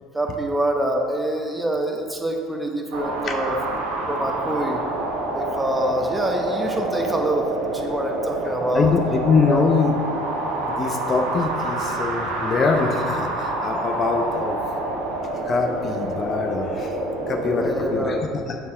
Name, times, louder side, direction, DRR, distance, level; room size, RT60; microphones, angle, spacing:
voice 1, 0.1-3.5 4.1-4.8 5.3-8.9 9.5-9.7 17.4-18.2, right 1 dB, 10° right, 2 dB, 1.1 m, -26 dB
sound 1, 2.9-18.2, right 2 dB, 80° right, 1.6 m, -27 dB
voice 2, 8.7-9.9 10.6-14.6 15.3-16.9 17.3-18.2, left 4 dB, 40° left, 4 dB, 0.7 m, -23 dB
6.8 x 4.5 x 6.4 m, 2.2 s
hypercardioid pair, 75°, 0 cm